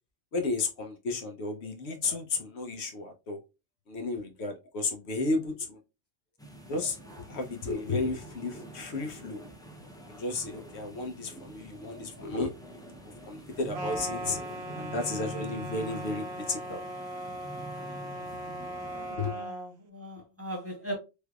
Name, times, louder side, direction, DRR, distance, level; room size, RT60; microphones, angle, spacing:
voice 1, 0.3-3.4 3.9-5.8 6.7-7.0 7.3-9.4 10.1-12.5 13.3-14.4 14.7-16.8 19.2-19.4, left 3 dB, 70° left, 1.0 m, -33 dB
sound 1, 6.4-19.2, right 2 dB, 5° left, 0.5 m, -46 dB
sound 2, 13.7-19.7, right 1 dB, 65° right, 0.8 m, -38 dB
voice 2, 18.9-20.9, right 1 dB, 15° right, 1.1 m, -39 dB
3.4 x 3.3 x 2.3 m
omnidirectional pair, 1.2 m